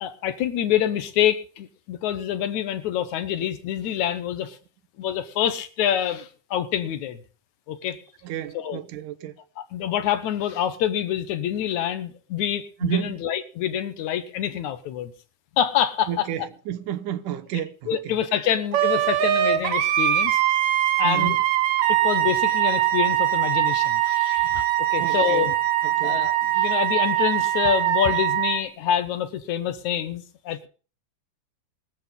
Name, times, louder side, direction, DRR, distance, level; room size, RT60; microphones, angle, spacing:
voice 1, 0.0-4.6 5.0-7.2 7.7-8.0 8.5-8.8 9.6-15.1 15.6-16.3 17.9-20.4 21.0-21.4 21.9-24.6 24.9-25.5 26.0-30.7, left 10 dB, 70° left, 2.3 m, -26 dB
voice 2, 8.2-9.4 12.8-13.2 16.1-18.2 21.0-21.3 25.0-25.5 25.8-26.2, right 11 dB, 85° right, 2.4 m, -31 dB
Wind instrument woodwind instrument, 18.7-28.6, right 12 dB, 70° right, 2.3 m, -22 dB
23.0 x 7.9 x 3.7 m
omnidirectional pair, 3.5 m